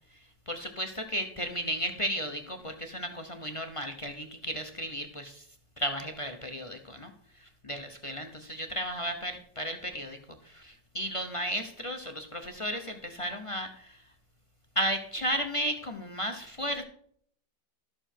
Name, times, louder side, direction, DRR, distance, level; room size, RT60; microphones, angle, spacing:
voice 1, 0.5-5.4 5.8-7.1 7.6-10.2 10.4-14.0 14.8-16.8, equal, 35° left, 6 dB, 0.5 m, -34 dB
13.0 x 6.9 x 4.5 m, 0.62 s
omnidirectional pair, 1.9 m